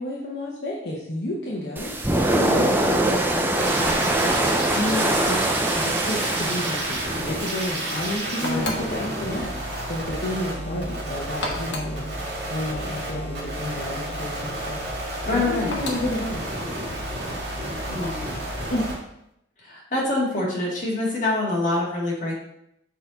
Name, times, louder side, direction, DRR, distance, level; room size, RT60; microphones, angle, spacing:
voice 1, 0.0-4.4 4.7-5.4 5.7-9.6 9.9-14.8 15.3-16.4 18.7-18.9, left 1 dB, 60° left, -5 dB, 1.0 m, -31 dB
sound 1, 1.8-8.2, right 1 dB, 10° right, 0.4 m, -23 dB
sound 2, 3.6-18.9, right 1 dB, 60° right, 2.0 m, -31 dB
sound 3, 6.1-6.5 8.4-9.0 9.6-10.0 11.3-12.0 14.1-14.4 15.7-16.2 17.8-18.2, left 2 dB, 85° left, 1.2 m, -34 dB
voice 2, 8.4-8.7 15.2-15.7 17.9-18.3 19.6-22.3, left 2 dB, 40° left, -4 dB, 1.8 m, -25 dB
6.7 x 4.1 x 4.0 m, 0.79 s
head